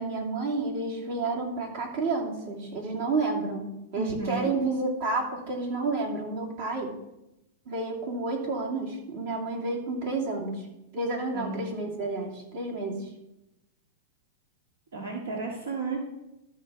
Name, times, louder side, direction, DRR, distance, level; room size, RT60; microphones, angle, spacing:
voice 1, 0.0-6.9 7.7-10.6 10.9-13.0, right 3 dB, 60° right, 0 dB, 2.6 m, -30 dB
voice 2, 4.0-4.5 11.3-11.6 14.9-16.0, right 3 dB, 85° right, 0 dB, 1.8 m, -32 dB
13.0 x 4.3 x 6.1 m, 0.90 s
hypercardioid pair, 135°, 0 cm